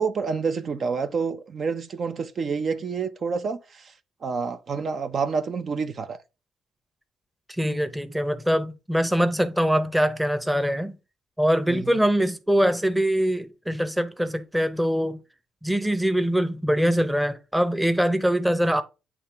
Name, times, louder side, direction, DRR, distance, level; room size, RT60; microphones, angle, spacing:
voice 1, 0.0-3.9 4.2-6.2 11.7-12.0, right 5 dB, 50° right, 0.6 m, -28 dB
voice 2, 7.6-11.0 11.4-15.2 15.6-18.8, equal, 5° right, 0.8 m, -23 dB
8.5 x 2.9 x 4.6 m
cardioid pair, 90°, 0 cm